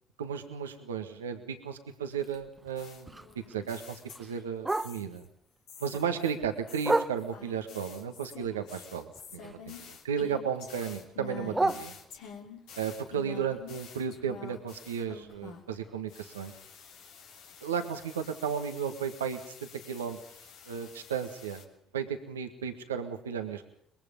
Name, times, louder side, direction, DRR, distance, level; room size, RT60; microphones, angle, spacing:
voice 1, 0.2-5.2 5.8-12.0 12.8-16.5 17.6-20.2 20.6-21.6 21.9-23.7, right 7 dB, 90° right, 6 dB, 1.6 m, -34 dB
Bark, 2.1-5.3 5.7-7.6 8.1-9.9 10.2-12.5 12.9-16.8 17.2-17.3 17.6-18.0 18.4-18.5 18.8-18.9 19.4-19.5, right 2 dB, 15° right, 1.3 m, -36 dB
sound 1, 2.8-5.2 5.7-15.8 16.1-21.6, left 7 dB, 70° left, 3.0 m, -49 dB
23.0 x 21.5 x 5.4 m, 0.68 s
hypercardioid pair, 55°, 0 cm